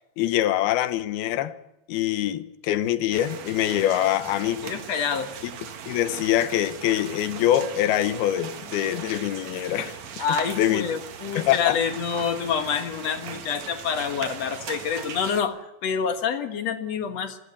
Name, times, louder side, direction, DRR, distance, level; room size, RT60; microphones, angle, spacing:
voice 1, 0.2-1.5 1.9-4.6 5.4-5.5 5.9-9.9 10.6-10.9 11.4-11.8, left 12 dB, 80° left, 13 dB, 3.0 m, -24 dB
sound 1, 3.1-15.4, right 7 dB, 55° right, 2.6 m, -39 dB
voice 2, 4.6-5.3 10.2-17.4, left 7 dB, 55° left, 9 dB, 2.2 m, -27 dB
26.0 x 16.0 x 8.5 m, 0.93 s
omnidirectional pair, 4.5 m